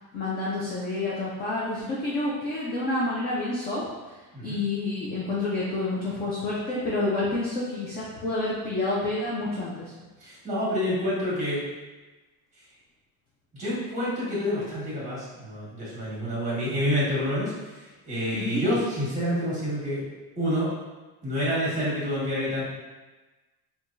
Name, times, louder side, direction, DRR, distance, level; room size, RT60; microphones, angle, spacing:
voice 1, 0.1-3.8 4.4-9.9 18.3-18.6, left 2 dB, 25° left, -6 dB, 0.4 m, -29 dB
voice 2, 10.2-11.6 12.6-12.7 13.5-20.0 20.4-20.7 21.2-22.6, equal, 15° right, -8 dB, 1.4 m, -28 dB
4.4 x 2.4 x 2.5 m, 1.2 s
cardioid pair, 165°, 40 cm